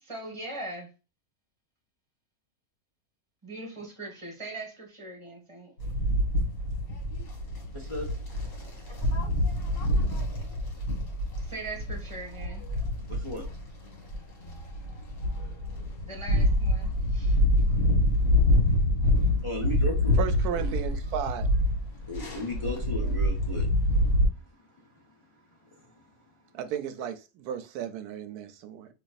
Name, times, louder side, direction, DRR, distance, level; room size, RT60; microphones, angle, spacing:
voice 1, 0.0-0.9 3.4-5.7 11.4-12.6 16.1-17.4, right 2 dB, 20° right, 1.3 m, -40 dB
sound 1, 5.8-24.3, left 1 dB, 55° left, 1.8 m, -26 dB
voice 2, 7.7-8.1 13.1-13.5 19.4-20.2 20.5-20.8 22.0-23.7 24.2-24.3 24.8-25.1 25.6-26.1, left 1 dB, 25° left, 0.8 m, -36 dB
voice 3, 20.2-21.5 26.5-28.9, right 9 dB, 85° right, 1.1 m, -34 dB
4.0 x 2.9 x 2.2 m
omnidirectional pair, 1.6 m